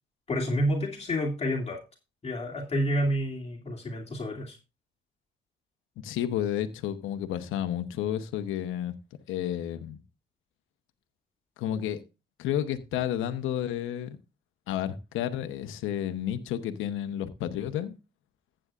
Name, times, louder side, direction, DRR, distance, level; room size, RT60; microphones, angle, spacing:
voice 1, 0.3-1.8 2.2-4.6, equal, 30° left, 2.6 m, -29 dB
voice 2, 6.0-8.9 9.3-10.0 11.6-12.0 12.4-14.2 14.7-18.0, left 11 dB, 90° left, 0.9 m, -31 dB
14.5 x 8.8 x 2.4 m
cardioid pair, 90°, 20 cm